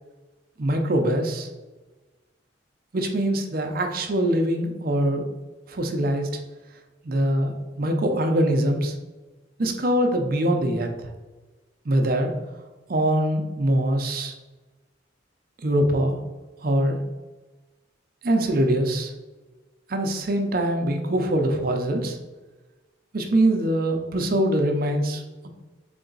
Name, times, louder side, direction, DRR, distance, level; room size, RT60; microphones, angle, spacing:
voice 1, 0.6-1.5 2.9-5.2 5.7-6.3 7.0-8.9 9.6-10.9 11.9-12.3 12.9-14.3 15.6-16.2 16.6-17.0 18.2-19.1 19.9-22.2 23.1-25.5, right 1 dB, 50° right, 4 dB, 0.6 m, -23 dB
3.8 x 3.4 x 3.9 m, 1.2 s
head